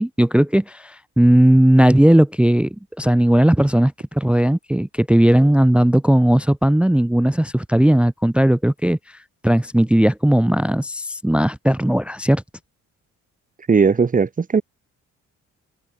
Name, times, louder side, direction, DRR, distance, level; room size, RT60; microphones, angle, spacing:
voice 1, 0.0-2.7 3.0-9.0 9.4-12.4, right 1 dB, 5° right, 0.5 m, -16 dB
voice 2, 13.7-14.6, right 5 dB, 25° right, 1.2 m, -17 dB
open air
cardioid pair, 90°, 30 cm